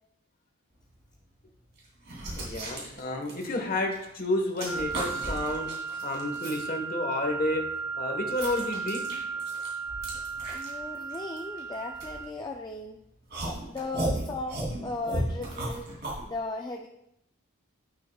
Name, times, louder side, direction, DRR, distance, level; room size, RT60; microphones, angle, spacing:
sound 1, 1.0-1.1 1.8-4.1 4.4-6.6 7.1-12.7 13.3-16.2, right 1 dB, 50° right, 3.1 m, -35 dB
voice 1, 2.3-5.7 6.0-7.6 8.0-9.0, left 1 dB, 40° left, 3 dB, 1.3 m, -30 dB
sound 2, 4.7-12.3, right 5 dB, 75° left, 1.5 m, -35 dB
voice 2, 10.5-13.0 13.7-15.9 16.2-16.9, left 2 dB, 20° left, 2 dB, 0.3 m, -37 dB
12.0 x 6.4 x 2.3 m, 0.80 s
head